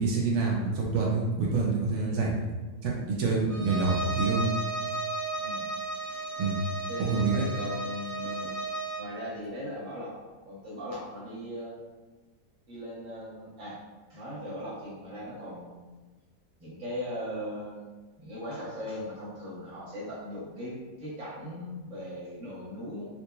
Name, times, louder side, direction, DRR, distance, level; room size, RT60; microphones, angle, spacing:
voice 1, 0.0-2.5 2.8-4.5 6.4-6.6 7.0-7.5, right 4 dB, 70° right, -2 dB, 0.7 m, -27 dB
Bowed string instrument, 3.5-9.1, right 3 dB, 35° right, 1.2 m, -34 dB
voice 2, 6.9-8.6 9.0-10.1 10.4-11.7 12.7-13.8 14.1-15.9 16.6-17.9 18.2-23.0, equal, 55° right, -7 dB, 1.5 m, -39 dB
3.8 x 2.8 x 2.3 m, 1.3 s
omnidirectional pair, 1.7 m